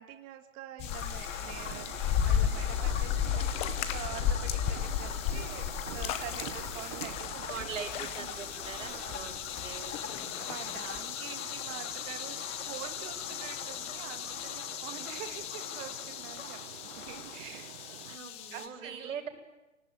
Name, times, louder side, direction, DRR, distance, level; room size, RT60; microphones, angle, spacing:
voice 1, 0.0-1.9 2.2-5.7 5.9-7.7 8.0-8.3 8.5-9.4 10.4-17.7 18.5-19.1, right 12 dB, 25° right, 7 dB, 1.8 m, -46 dB
sound 1, 0.8-18.7, left 10 dB, 15° left, 0.9 m, -35 dB
sound 2, 0.9-17.4, left 5 dB, 75° left, 3.8 m, -45 dB
sound 3, 1.4-18.2, right 12 dB, 40° right, 0.9 m, -48 dB
voice 2, 7.5-9.4 9.6-10.4 18.0-19.3, right 6 dB, 80° right, 2 dB, 6.7 m, -42 dB
27.0 x 18.0 x 9.5 m, 1.0 s
hypercardioid pair, 155°, 38 cm